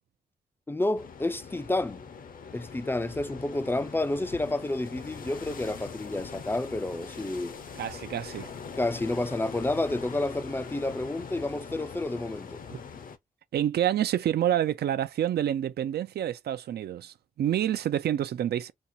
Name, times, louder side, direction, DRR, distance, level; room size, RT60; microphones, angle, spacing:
voice 1, 0.7-2.0 2.5-7.5 8.8-12.6, left 2 dB, 15° left, 0.3 m, -30 dB
sound 1, 0.9-13.2, left 6 dB, 60° left, 0.6 m, -42 dB
voice 2, 7.8-8.5 12.7-12.8 13.5-18.7, right 11 dB, 90° right, 0.4 m, -28 dB
4.2 x 2.4 x 2.6 m
wide cardioid pair, 120°, 16 cm